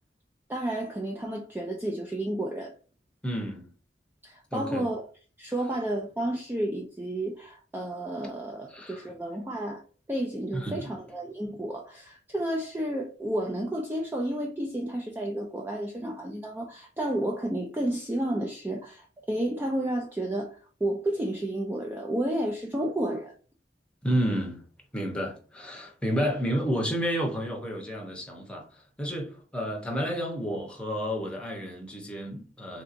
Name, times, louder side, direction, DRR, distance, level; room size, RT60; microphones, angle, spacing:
voice 1, 0.5-2.7 4.2-5.0 5.4-9.8 10.1-23.3, right 1 dB, 10° right, 0.4 m, -31 dB
voice 2, 3.2-3.7 4.5-4.9 8.7-9.1 10.5-11.0 24.0-24.6 24.9-28.7 29.0-32.8, equal, 5° left, 0.8 m, -31 dB
3.4 x 2.8 x 2.5 m
head